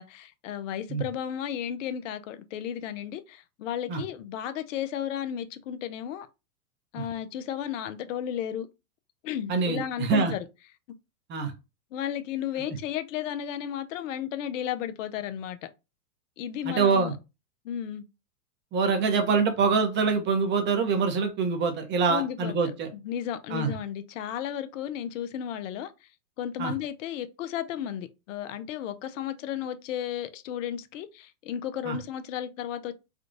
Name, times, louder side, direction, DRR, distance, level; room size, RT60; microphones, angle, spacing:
voice 1, 0.0-6.3 6.9-8.7 9.2-10.5 11.9-15.6 16.4-17.1 17.6-18.0 22.1-25.9 26.4-32.9, left 10 dB, 55° left, 0.6 m, -34 dB
voice 2, 9.5-10.3 11.3-11.5 16.6-17.1 18.7-22.9 23.5-23.7 26.6-26.7 31.8-32.0, right 5 dB, 25° right, 0.8 m, -25 dB
3.6 x 2.3 x 2.6 m
hypercardioid pair, 110°, 45 cm